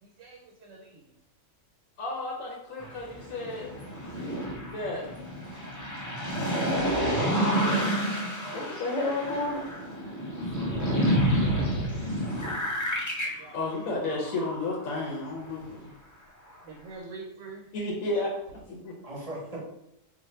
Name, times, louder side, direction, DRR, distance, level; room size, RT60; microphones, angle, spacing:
voice 1, 0.0-1.1 6.1-6.6 8.3-8.9 9.2-9.4 13.3-13.9 16.6-17.7, right 4 dB, 75° right, 0 dB, 1.0 m, -46 dB
voice 2, 2.0-3.7 4.7-5.1 8.5-9.6 13.5-15.9 17.7-19.0, left 2 dB, 90° left, -2 dB, 1.1 m, -32 dB
sound 1, 2.8-15.0 15.6-15.7, equal, 25° left, 0.4 m, -29 dB
voice 3, 6.9-7.7 10.4-11.2 19.0-19.6, right 1 dB, 35° right, -4 dB, 0.7 m, -40 dB
2.6 x 2.4 x 4.1 m, 0.81 s
omnidirectional pair, 1.4 m